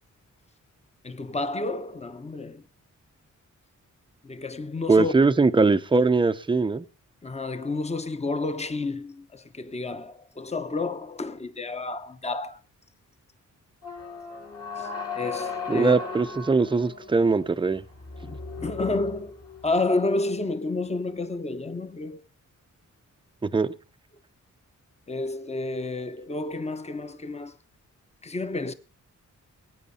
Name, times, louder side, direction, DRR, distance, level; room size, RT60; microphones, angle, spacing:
voice 1, 1.0-2.6 4.2-5.1 7.2-12.6 14.8-16.0 18.2-22.2 25.1-27.5 28.2-28.7, left 2 dB, 20° left, 1.0 m, -30 dB
voice 2, 4.9-6.8 15.7-17.8 23.4-23.7, right 3 dB, 15° right, 0.6 m, -21 dB
sound 1, 13.8-19.8, left 4 dB, 50° left, 3.8 m, -37 dB
20.5 x 9.3 x 4.2 m
wide cardioid pair, 105°, 31 cm